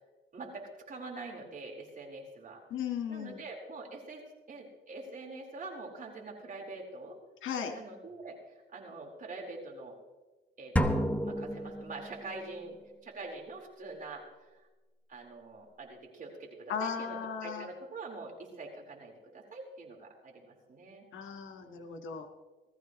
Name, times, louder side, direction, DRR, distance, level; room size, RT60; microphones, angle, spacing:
voice 1, 0.3-2.6 3.1-7.2 7.7-10.0 10.6-12.8 13.0-14.6 15.1-21.1, right 3 dB, 45° right, -1 dB, 4.5 m, -45 dB
voice 2, 2.7-3.4 7.4-7.7 16.7-17.7 21.1-22.3, left 7 dB, 80° left, 5 dB, 1.8 m, -36 dB
sound 1, 10.8-12.4, equal, 5° left, 1.1 m, -31 dB
20.0 x 14.5 x 3.2 m, 1.2 s
cardioid pair, 90°, 20 cm